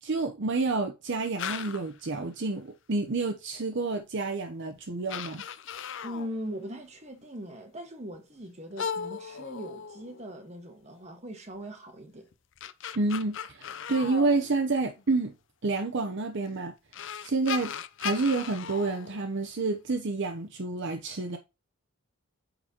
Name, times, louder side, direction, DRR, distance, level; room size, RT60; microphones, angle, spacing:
voice 1, 0.0-5.4 13.0-15.3 15.6-16.7 17.2-17.7 18.0-21.4, right 3 dB, 55° right, 0.7 m, -29 dB
sound 1, 1.4-2.0 4.0-4.1 4.8-4.9 5.1-6.4 8.8-10.4 12.3-15.0 16.4-16.5 16.9-19.8, left 7 dB, 55° left, 0.5 m, -37 dB
voice 2, 6.0-12.3, equal, 30° right, 1.4 m, -40 dB
8.8 x 4.0 x 2.9 m
head